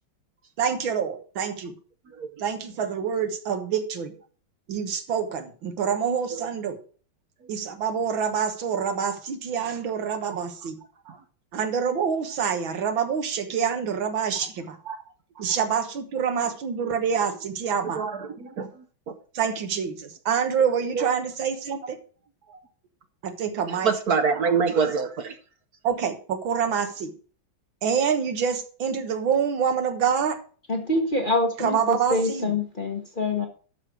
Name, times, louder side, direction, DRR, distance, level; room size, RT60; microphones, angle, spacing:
voice 1, 0.6-1.7 2.4-4.1 4.7-6.8 7.5-10.8 11.5-14.8 15.4-18.0 19.3-22.0 23.2-23.9 25.8-27.1 27.8-30.4 31.6-32.5, right 7 dB, 80° right, 2.0 m, -26 dB
voice 2, 17.8-18.7 20.9-21.1 22.5-22.6 23.7-25.4, right 5 dB, 60° right, 1.2 m, -26 dB
voice 3, 30.7-33.5, left 2 dB, 30° left, 1.0 m, -25 dB
12.0 x 5.0 x 6.1 m
omnidirectional pair, 2.1 m